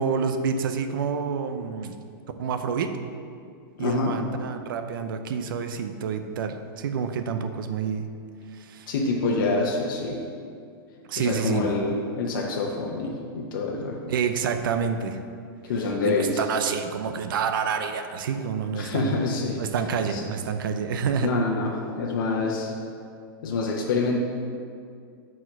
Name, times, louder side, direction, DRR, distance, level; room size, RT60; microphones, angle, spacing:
voice 1, 0.0-1.9 2.4-3.0 3.8-8.1 8.5-8.9 11.1-11.7 14.1-15.2 16.0-19.2 19.6-21.3, right 6 dB, 60° right, 8 dB, 0.6 m, -28 dB
voice 2, 3.8-4.1 8.9-10.2 11.2-14.0 15.6-16.3 18.7-19.6 20.1-20.2 21.2-21.7 22.0-22.7 23.4-24.2, left 3 dB, 60° left, -1 dB, 0.9 m, -26 dB
6.7 x 4.4 x 5.9 m, 2.3 s
supercardioid pair, 170°, 12 cm